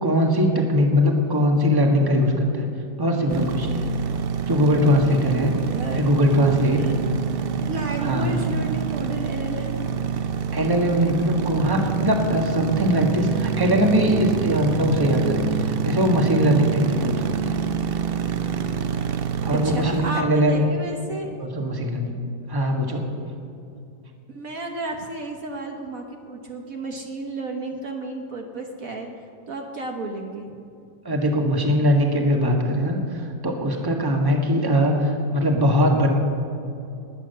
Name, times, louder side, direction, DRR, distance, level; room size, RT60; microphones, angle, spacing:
voice 1, 0.0-2.7 3.0-3.9 4.5-5.5 5.9-6.8 8.0-8.4 10.5-17.6 19.4-20.6 21.4-22.2 22.5-23.1 31.0-36.1, equal, 15° right, 2 dB, 1.5 m, -21 dB
sound 1, 3.3-20.1, right 7 dB, 75° right, 0.5 m, -26 dB
voice 2, 5.7-6.1 6.8-7.0 7.6-9.8 19.5-21.3 24.3-30.5, right 2 dB, 55° right, 2 dB, 1.5 m, -32 dB
20.5 x 9.0 x 6.8 m, 2.6 s
omnidirectional pair, 1.9 m